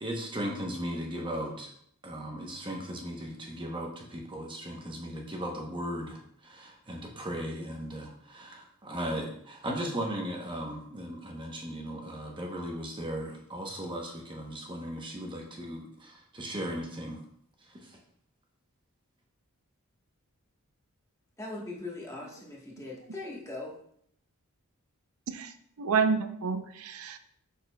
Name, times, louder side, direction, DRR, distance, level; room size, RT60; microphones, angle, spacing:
voice 1, 0.0-1.7 2.0-17.2 17.6-18.0, equal, 20° right, 0 dB, 0.8 m, -37 dB
voice 2, 21.4-23.7, left 2 dB, 15° left, -3 dB, 1.2 m, -40 dB
voice 3, 25.8-27.2, right 5 dB, 75° right, 10 dB, 0.5 m, -29 dB
6.6 x 6.5 x 2.2 m, 0.67 s
head